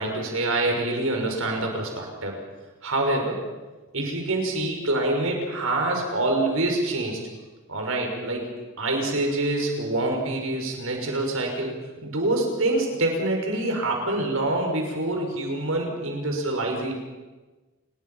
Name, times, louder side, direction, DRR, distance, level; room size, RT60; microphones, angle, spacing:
voice 1, 0.0-2.4 2.8-3.4 3.9-7.2 7.7-8.5 8.8-16.9, right 2 dB, 80° right, 2 dB, 5.8 m, -26 dB
28.5 x 21.0 x 5.7 m, 1.2 s
head